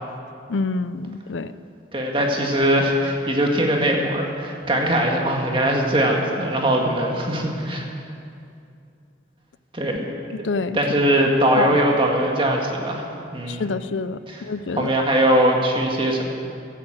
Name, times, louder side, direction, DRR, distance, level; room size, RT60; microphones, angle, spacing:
voice 1, 0.5-1.5 10.3-10.8 11.6-11.8 13.5-14.9, left 4 dB, 85° left, 14 dB, 0.5 m, -27 dB
voice 2, 1.9-7.9 9.7-10.1 10.7-13.1 13.3-13.7 14.3-14.4 14.8-16.2, right 1 dB, 30° right, 0 dB, 1.9 m, -21 dB
15.5 x 11.5 x 7.6 m, 2.5 s
head